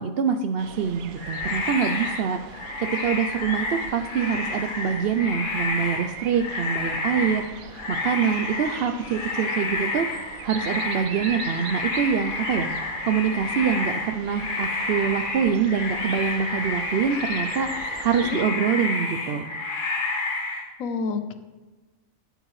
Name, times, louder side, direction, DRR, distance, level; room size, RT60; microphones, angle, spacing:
voice 1, 0.0-2.4 2.8-10.1 10.4-12.7 13.0-17.7 18.0-19.5, right 7 dB, 65° right, 6 dB, 0.6 m, -25 dB
sound 1, 0.6-18.4, right 8 dB, 80° right, 1.1 m, -41 dB
sound 2, 1.2-20.7, left 3 dB, 40° left, 1.1 m, -30 dB
voice 2, 20.8-21.3, left 5 dB, 75° left, 10 dB, 1.1 m, -29 dB
12.5 x 8.1 x 3.1 m, 1.2 s
omnidirectional pair, 1.4 m